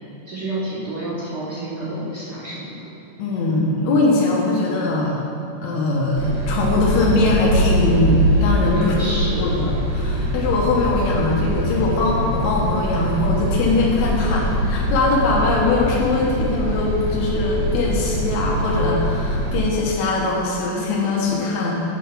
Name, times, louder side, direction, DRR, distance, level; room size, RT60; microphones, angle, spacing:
voice 1, 0.3-2.8 8.8-9.4, right 1 dB, 50° right, -10 dB, 1.3 m, -29 dB
voice 2, 3.2-5.2 5.6-8.9 9.4-21.8, left 2 dB, 70° left, -4 dB, 2.1 m, -21 dB
sound 1, 6.2-19.6, equal, 70° right, 1.1 m, -23 dB
9.3 x 4.5 x 5.9 m, 2.9 s
omnidirectional pair, 3.7 m